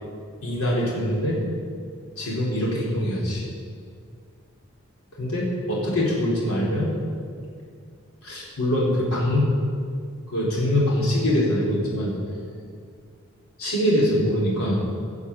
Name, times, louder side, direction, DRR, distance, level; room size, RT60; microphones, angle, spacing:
voice 1, 0.4-1.4 2.2-3.4 5.2-6.9 8.2-9.5 10.3-12.1 13.6-14.8, left 1 dB, 85° left, -5 dB, 4.1 m, -23 dB
18.5 x 7.1 x 7.2 m, 2.2 s
head